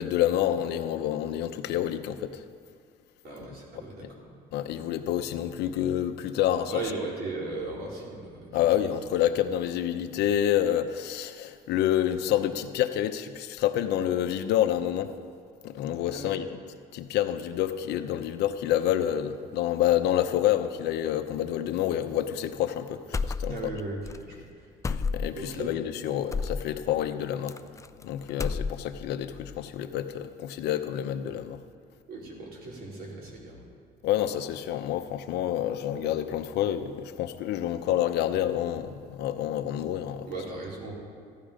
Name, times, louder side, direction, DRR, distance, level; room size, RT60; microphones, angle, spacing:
voice 1, 0.0-2.4 4.0-4.1 4.5-6.8 8.5-15.1 15.6-16.5 16.9-23.5 24.9-27.6 28.0-31.6 34.0-40.3, left 11 dB, 80° left, 8 dB, 0.8 m, -28 dB
voice 2, 3.2-4.4 6.7-8.8 16.1-16.4 23.5-24.7 25.3-25.7 32.1-33.7 40.3-41.0, right 2 dB, 65° right, -3 dB, 3.8 m, -37 dB
sound 1, 23.1-23.8 24.0-24.2 24.8-25.5 26.3-26.6 27.5-28.0 28.3-29.0, left 4 dB, 20° left, 0.3 m, -30 dB
14.5 x 12.0 x 5.1 m, 2.1 s
cardioid pair, 110°, 17 cm